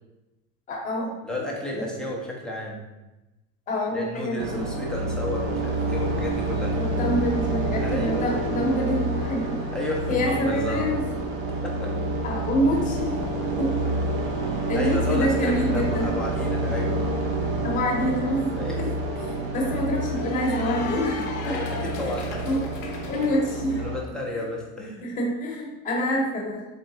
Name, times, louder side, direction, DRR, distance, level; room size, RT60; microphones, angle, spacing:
voice 1, 0.7-1.1 1.7-1.9 3.7-4.6 6.7-9.6 10.1-11.0 12.2-13.8 14.7-16.1 17.6-18.9 19.2-21.6 22.0-22.1 22.4-22.7 23.1-23.9 24.3-24.4 25.0-26.7, equal, 20° left, -2 dB, 0.8 m, -26 dB
voice 2, 1.2-2.8 3.9-6.7 7.8-8.4 9.7-10.9 11.6-11.9 14.7-17.3 18.6-18.8 21.4-22.5 23.8-25.1, left 1 dB, ahead, -4 dB, 0.4 m, -32 dB
sound 1, 4.4-24.0, right 2 dB, 60° right, 0.7 m, -28 dB
Cheering / Applause, 18.0-23.3, left 5 dB, 50° left, 0.7 m, -39 dB
4.0 x 3.3 x 2.7 m, 1.0 s
supercardioid pair, 140°, 38 cm